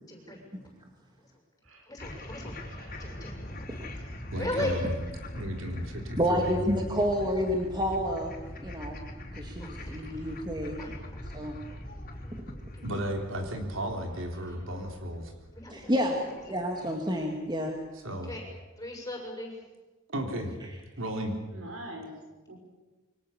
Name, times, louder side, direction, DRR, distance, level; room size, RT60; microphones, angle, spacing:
voice 1, 0.1-0.4 1.9-2.6 3.0-3.3 4.4-4.8 9.6-10.3 10.8-10.9 11.7-11.8 12.2-12.3 12.7-12.9 14.4-14.6 15.5-16.2 16.5-16.6 18.2-18.4 18.8-19.5, left 1 dB, 15° left, 0 dB, 6.8 m, -38 dB
sound 1, 2.0-17.3, left 1 dB, 45° left, 4.4 m, -42 dB
voice 2, 2.5-3.3 21.5-22.2 22.5-22.6, right 1 dB, 85° right, 3 dB, 6.5 m, -45 dB
voice 3, 4.3-4.9 5.3-6.8 12.8-15.3 18.0-18.3 20.1-20.5 21.0-21.3, equal, 70° right, 3 dB, 3.6 m, -34 dB
voice 4, 6.2-8.3 8.6-9.0 9.4-10.8 11.3-11.5 12.5-12.6 15.7-16.2 16.5-17.8, equal, 20° right, 2 dB, 2.3 m, -29 dB
27.0 x 24.0 x 7.2 m, 1.2 s
head